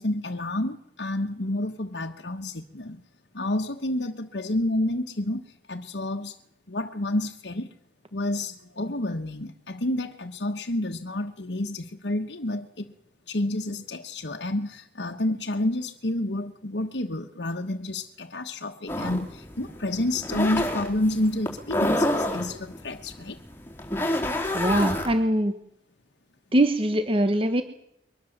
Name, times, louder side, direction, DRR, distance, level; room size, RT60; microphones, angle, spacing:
voice 1, 0.0-3.0 3.3-6.4 6.7-7.7 8.1-12.9 13.3-23.4, left 1 dB, 75° left, 1.3 m, -29 dB
sound 1, 18.9-25.1, left 1 dB, 10° left, 4.2 m, -28 dB
voice 2, 24.5-25.5 26.5-27.6, right 1 dB, 30° right, 1.2 m, -22 dB
23.5 x 20.0 x 7.4 m
head